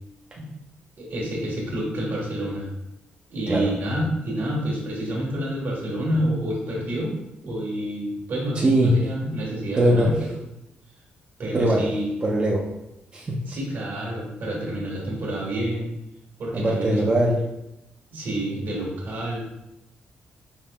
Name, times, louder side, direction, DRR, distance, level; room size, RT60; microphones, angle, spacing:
voice 1, 1.0-2.7 3.3-7.1 7.4-10.1 11.4-12.1 13.5-15.9 16.4-17.1 18.1-19.4, right 1 dB, 65° right, -3 dB, 1.3 m, -28 dB
voice 2, 8.5-9.0 9.7-10.1 11.5-11.9 12.2-12.7 13.1-13.6 16.5-17.4, right 1 dB, 30° right, -3 dB, 0.5 m, -21 dB
5.2 x 2.8 x 2.2 m, 0.87 s
cardioid pair, 110°, 4 cm